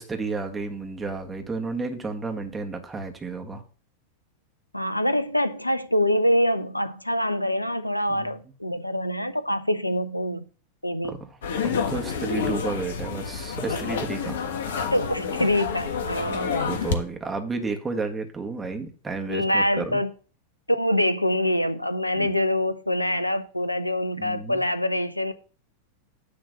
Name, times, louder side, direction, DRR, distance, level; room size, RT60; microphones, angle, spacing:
voice 1, 0.0-3.6 8.1-8.3 11.0-11.4 11.6-14.4 16.2-20.0 22.2-22.3 24.2-24.6, right 3 dB, 15° right, 1.7 m, -32 dB
voice 2, 4.7-10.4 10.8-11.2 14.9-16.7 19.3-20.1 20.7-25.3, left 1 dB, 85° left, 0.6 m, -25 dB
sound 1, 11.4-16.9, left 6 dB, 60° left, 1.4 m, -29 dB
10.5 x 3.8 x 6.8 m
figure-of-eight pair, 90°, 0 cm